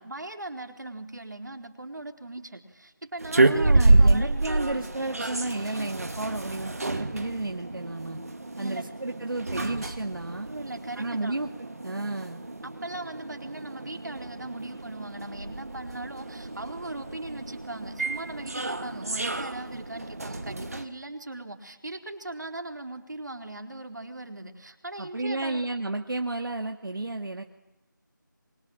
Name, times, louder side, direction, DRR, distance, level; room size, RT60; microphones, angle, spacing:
voice 1, 0.0-4.4 8.6-8.9 10.4-11.4 12.6-25.7, right 2 dB, 65° right, 5 dB, 4.1 m, -39 dB
sound 1, 3.2-20.8, right 2 dB, 45° right, 2.2 m, -28 dB
voice 2, 3.4-8.2 8.6-10.5 11.0-12.4 25.0-27.4, right 2 dB, 85° right, 4 dB, 2.2 m, -32 dB
27.0 x 24.0 x 9.0 m, 0.99 s
figure-of-eight pair, 180°, 11 cm